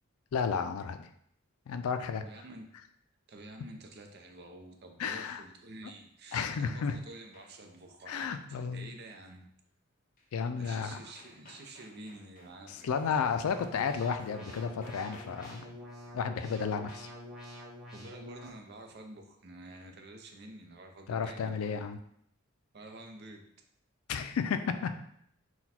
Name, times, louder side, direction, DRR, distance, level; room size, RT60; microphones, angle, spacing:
voice 1, 0.3-1.1 1.7-2.2 5.0-5.4 6.3-6.9 8.1-8.9 10.3-11.0 12.8-15.7 16.1-17.1 21.1-22.0 24.1-25.0, left 6 dB, 90° left, 9 dB, 0.4 m, -32 dB
voice 2, 2.2-2.8 3.3-9.5 10.6-13.3 17.9-21.8 22.7-23.5, right 2 dB, 50° right, 4 dB, 0.5 m, -49 dB
sound 1, 6.0-7.8 10.2-10.3 10.6-15.9, left 2 dB, 40° left, 0.6 m, -57 dB
sound 2, 13.5-18.5, left 1 dB, ahead, 0.7 m, -47 dB
4.0 x 2.2 x 4.2 m, 0.70 s
head